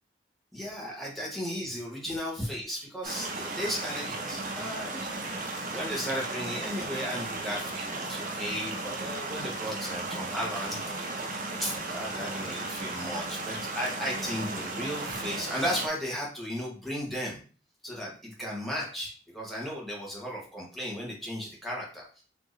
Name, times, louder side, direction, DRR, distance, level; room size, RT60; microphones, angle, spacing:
voice 1, 0.5-10.8 11.6-17.4 17.8-22.2, equal, ahead, -4 dB, 1.3 m, -35 dB
sound 1, 3.0-15.9, right 2 dB, 45° right, 0.7 m, -35 dB
4.3 x 2.9 x 3.3 m, 0.39 s
head